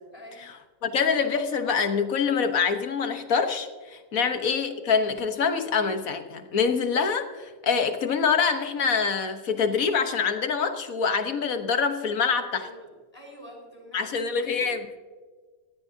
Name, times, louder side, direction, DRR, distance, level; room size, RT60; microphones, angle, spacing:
voice 1, 0.1-0.4 4.2-4.3 12.5-14.7, equal, 15° left, -2 dB, 4.7 m, -46 dB
voice 2, 0.8-12.7 13.9-15.0, left 5 dB, 50° left, 7 dB, 1.4 m, -25 dB
19.0 x 14.5 x 2.8 m, 1.4 s
omnidirectional pair, 2.0 m